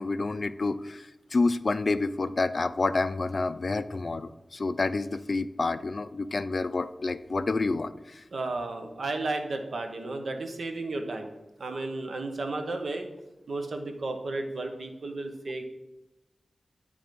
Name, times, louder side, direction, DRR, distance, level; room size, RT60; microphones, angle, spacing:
voice 1, 0.0-8.2, left 3 dB, 45° left, 13 dB, 0.3 m, -29 dB
voice 2, 8.3-11.3 11.6-13.1 13.5-15.7, right 2 dB, 75° right, 5 dB, 0.8 m, -33 dB
9.1 x 3.4 x 5.2 m, 0.96 s
wide cardioid pair, 100°, 0 cm